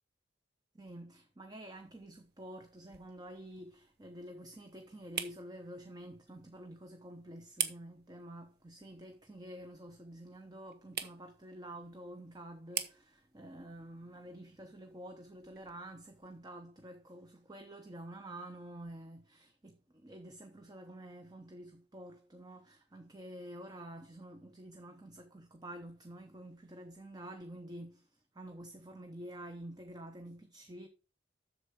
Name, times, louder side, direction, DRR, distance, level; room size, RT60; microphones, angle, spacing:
voice 1, 0.7-30.9, right 1 dB, 25° right, 0.8 m, -49 dB
sound 1, 1.6-16.4, right 8 dB, 60° right, 1.0 m, -47 dB
7.9 x 6.9 x 4.8 m
head